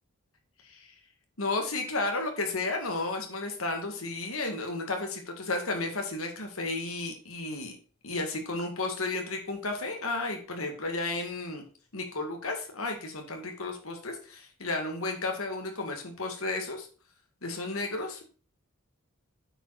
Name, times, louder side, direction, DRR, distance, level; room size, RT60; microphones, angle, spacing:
voice 1, 1.4-7.7 8.0-11.6 11.9-16.9 17.4-18.2, left 2 dB, 80° left, 3 dB, 2.1 m, -33 dB
8.7 x 5.1 x 4.9 m, 0.37 s
head